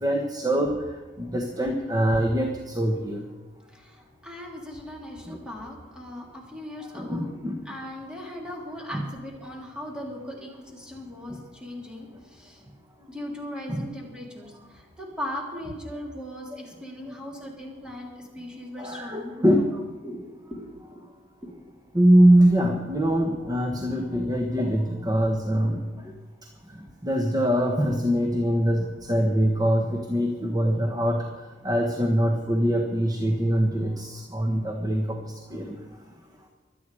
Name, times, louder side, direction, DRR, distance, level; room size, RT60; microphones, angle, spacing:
voice 1, 0.0-0.7 1.2-2.5 2.7-3.2 5.3-5.4 6.9-7.6 13.7-13.9 18.8-19.7 21.9-25.8 27.0-31.2 31.6-35.2 35.5-35.8, equal, 20° right, 2 dB, 1.3 m, -23 dB
voice 2, 3.7-7.4 7.6-12.6 13.1-20.2 20.5-21.0 21.5-21.7, left 1 dB, 5° right, -2 dB, 3.4 m, -39 dB
24.0 x 9.2 x 5.0 m, 1.2 s
head